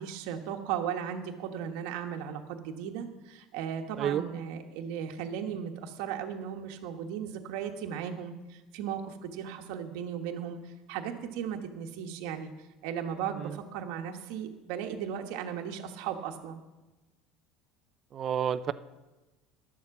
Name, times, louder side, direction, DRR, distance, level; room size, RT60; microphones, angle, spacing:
voice 1, 0.0-12.5 12.8-16.6, right 8 dB, 65° right, 4 dB, 1.3 m, -36 dB
voice 2, 18.1-18.7, right 9 dB, 30° right, 14 dB, 0.4 m, -30 dB
11.0 x 7.4 x 7.1 m, 1.1 s
cardioid pair, 160°, 0 cm